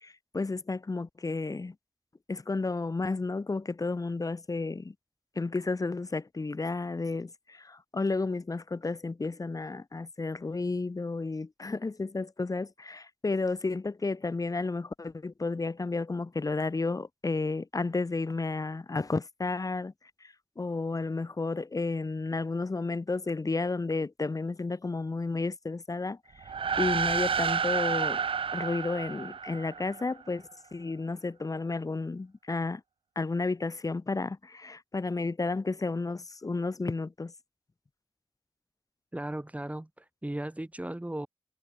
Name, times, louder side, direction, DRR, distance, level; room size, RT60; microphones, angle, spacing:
voice 1, 0.0-1.7 2.3-4.9 5.3-19.9 20.2-26.2 26.8-28.2 28.5-30.4 30.7-32.8 33.1-37.3, left 3 dB, 40° left, 1.6 m, -32 dB
sound 1, 26.4-30.1, right 6 dB, 75° right, 1.7 m, -30 dB
voice 2, 39.1-41.3, right 1 dB, 15° right, 3.2 m, -36 dB
cardioid pair, 45°, 9 cm